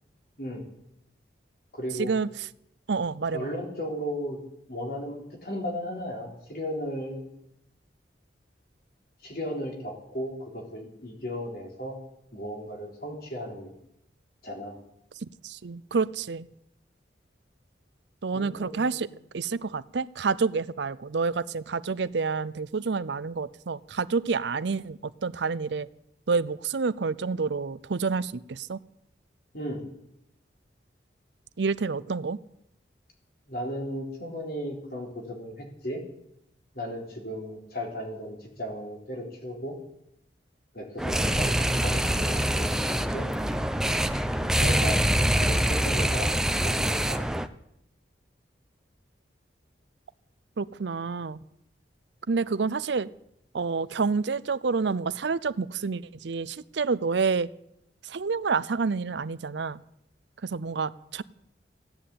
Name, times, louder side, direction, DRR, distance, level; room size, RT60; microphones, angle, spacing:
voice 1, 1.7-2.1 3.3-4.4 4.7-7.2 9.2-12.0 12.3-13.7 14.4-14.8 18.3-19.0 29.5-29.8 33.5-36.0 36.7-39.7 40.7-43.3 44.4-45.1 45.4-46.3 46.6-47.3 60.7-60.9, equal, 55° left, 1 dB, 3.9 m, -35 dB
voice 2, 2.9-3.5 15.2-16.5 18.2-19.1 19.3-25.9 26.3-28.8 31.6-32.4 50.6-51.4 52.3-53.1 53.5-57.5 58.0-59.8 60.4-61.2, right 4 dB, 75° right, 17 dB, 0.6 m, -28 dB
sound 1, 41.0-47.5, right 1 dB, 5° right, 0.6 m, -25 dB
16.0 x 10.0 x 8.5 m, 0.78 s
head